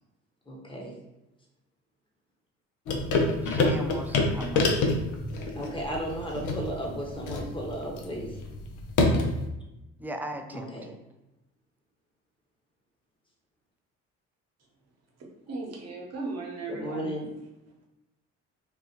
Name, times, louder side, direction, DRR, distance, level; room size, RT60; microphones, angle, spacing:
voice 1, 0.5-1.0 5.6-8.4 10.5-10.9 16.7-17.3, right 1 dB, 15° left, -2 dB, 1.1 m, -35 dB
sound 1, 2.9-9.4, left 2 dB, 65° left, 0.7 m, -27 dB
voice 2, 3.4-4.7 10.0-11.0, right 1 dB, 5° right, 5 dB, 0.3 m, -38 dB
voice 3, 15.5-17.1, right 3 dB, 50° right, -1 dB, 1.1 m, -36 dB
3.2 x 2.4 x 2.9 m, 0.95 s
supercardioid pair, 60°, 33 cm